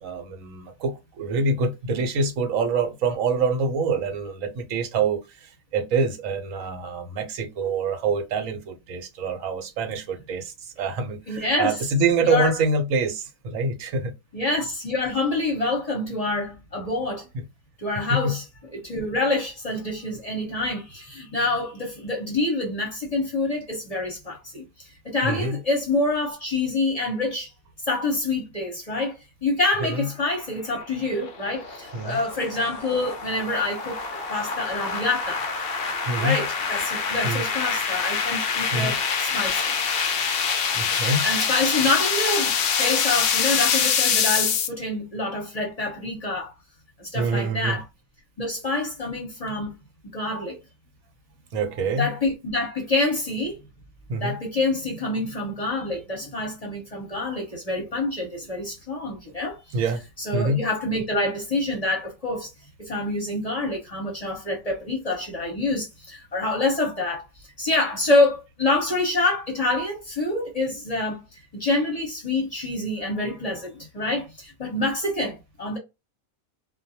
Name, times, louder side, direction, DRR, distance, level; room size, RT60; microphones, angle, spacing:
voice 1, 0.0-14.1 17.3-17.4 18.1-18.4 25.2-25.6 29.8-30.1 31.9-32.2 36.1-36.4 37.2-37.4 38.7-38.9 40.7-41.2 47.1-47.8 51.5-52.1 54.1-54.3 59.7-60.0 60.3-60.6, right 3 dB, 75° right, 1.1 m, -26 dB
voice 2, 11.3-11.7 12.2-12.5 14.3-17.3 17.8-18.4 18.7-27.5 27.9-34.0 34.3-39.7 41.2-46.5 47.0-47.8 48.4-49.7 50.1-50.6 52.0-53.6 54.2-59.8 60.2-62.5 62.8-67.3 67.6-71.2 71.5-75.8, left 2 dB, 35° left, 0.8 m, -26 dB
sound 1, 30.7-44.7, left 6 dB, 65° left, 0.6 m, -25 dB
2.5 x 2.1 x 2.7 m
omnidirectional pair, 1.4 m